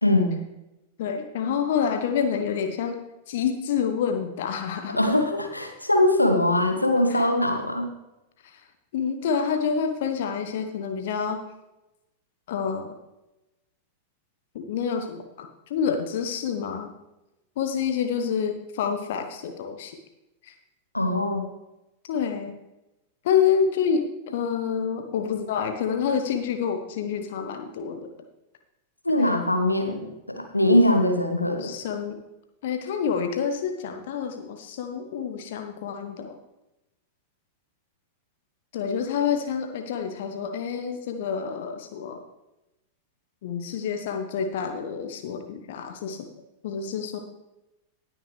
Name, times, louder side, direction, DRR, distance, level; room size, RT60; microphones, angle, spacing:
voice 1, 0.0-0.4 5.0-7.9 20.9-21.5 29.0-31.7, left 1 dB, 85° left, 4 dB, 1.3 m, -22 dB
voice 2, 1.0-3.0 3.3-5.0 7.1-7.3 8.4-8.6 8.9-11.4 12.5-12.9 14.5-16.9 17.6-20.0 20.4-20.5 22.1-22.5 23.2-28.1 29.2-29.3 31.6-32.2 32.6-36.4 38.7-42.2 43.4-46.3 46.6-47.2, left 7 dB, 55° left, 6 dB, 0.9 m, -28 dB
18.5 x 6.5 x 3.3 m, 0.95 s
figure-of-eight pair, 90°, 0 cm